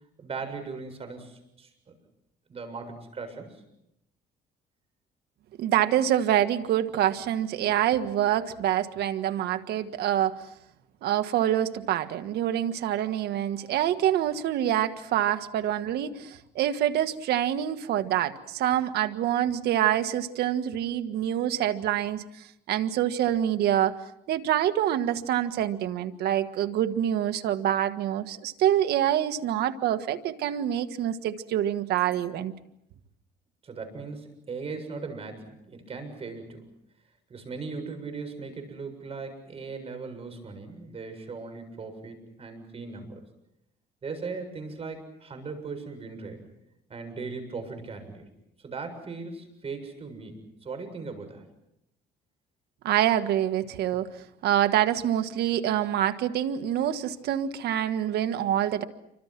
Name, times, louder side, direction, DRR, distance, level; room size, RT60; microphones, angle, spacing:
voice 1, 0.2-1.9 2.5-3.6 33.6-36.6 37.3-43.2 44.0-46.4 46.9-48.3 48.6-51.4, right 4 dB, 35° right, 7 dB, 7.3 m, -38 dB
voice 2, 5.6-10.4 11.0-22.2 22.7-23.9 24.3-32.5 52.8-54.1 54.4-58.8, right 11 dB, 75° right, 9 dB, 1.7 m, -26 dB
29.0 x 25.0 x 6.1 m, 0.82 s
cardioid pair, 110°, 17 cm